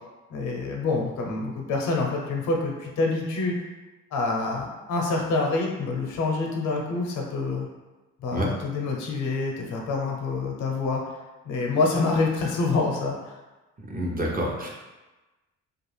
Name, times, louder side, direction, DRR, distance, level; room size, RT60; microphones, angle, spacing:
voice 1, 0.3-3.6 4.1-7.7 8.2-11.0 11.4-13.3, left 3 dB, 80° left, 0 dB, 0.7 m, -26 dB
voice 2, 13.9-14.7, right 1 dB, 30° right, -2 dB, 0.7 m, -27 dB
2.4 x 2.4 x 3.2 m, 1.1 s
cardioid pair, 90°, 30 cm